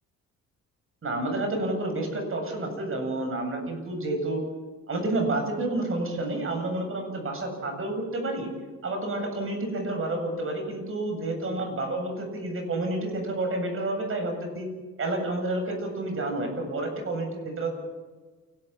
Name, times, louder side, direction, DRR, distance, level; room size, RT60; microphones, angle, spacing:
voice 1, 1.0-4.4 4.9-8.5 8.8-14.7 15.0-17.7, right 2 dB, 45° right, 3 dB, 8.0 m, -29 dB
29.0 x 13.0 x 7.5 m, 1.3 s
cardioid pair, 90°, 30 cm